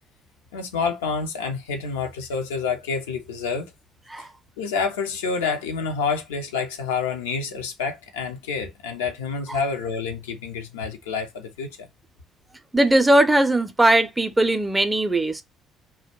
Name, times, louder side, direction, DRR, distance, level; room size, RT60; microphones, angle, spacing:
voice 1, 0.5-3.7 4.2-4.3 4.6-11.9, left 5 dB, 75° left, 0.4 m, -28 dB
voice 2, 12.7-15.4, right 1 dB, 15° right, 0.5 m, -19 dB
2.1 x 2.1 x 2.9 m
figure-of-eight pair, 50°, 0 cm